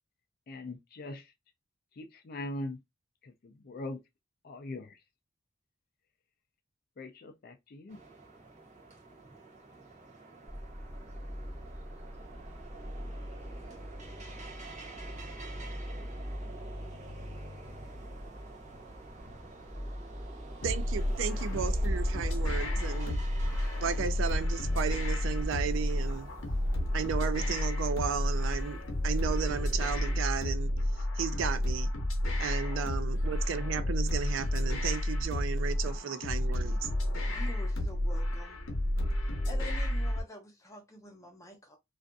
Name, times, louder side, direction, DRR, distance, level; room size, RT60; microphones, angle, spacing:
voice 1, 0.5-1.3 2.0-2.8 3.2-4.0 4.4-5.0 7.0-8.0, left 2 dB, 50° left, 0.4 m, -41 dB
sound 1, 7.9-27.7, right 3 dB, 35° right, 0.6 m, -50 dB
sound 2, 10.5-30.2, equal, 5° right, 1.3 m, -43 dB
sound 3, 20.6-40.2, left 1 dB, 75° left, 0.7 m, -31 dB
voice 2, 20.6-23.2 23.8-26.3 26.9-30.7 31.2-31.9 32.4-36.9, right 7 dB, 70° right, 0.3 m, -34 dB
voice 3, 36.8-38.6 39.2-41.8, left 1 dB, 15° left, 0.8 m, -48 dB
2.5 x 2.4 x 2.2 m
head